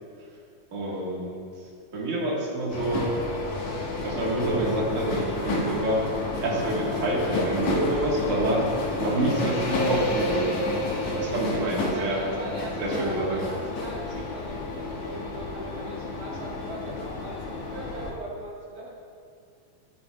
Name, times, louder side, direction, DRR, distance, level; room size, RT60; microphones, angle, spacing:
voice 1, 0.7-1.5 1.9-3.1 4.0-6.1 6.4-8.7 9.0-10.6 11.1-12.2 12.8-13.4, right 1 dB, 70° right, -4 dB, 0.7 m, -27 dB
sound 1, 2.7-18.1, left 2 dB, 65° left, 2.6 m, -30 dB
voice 2, 11.7-18.9, right 1 dB, 50° right, -4 dB, 1.4 m, -39 dB
14.5 x 7.9 x 2.2 m, 2.3 s
omnidirectional pair, 3.6 m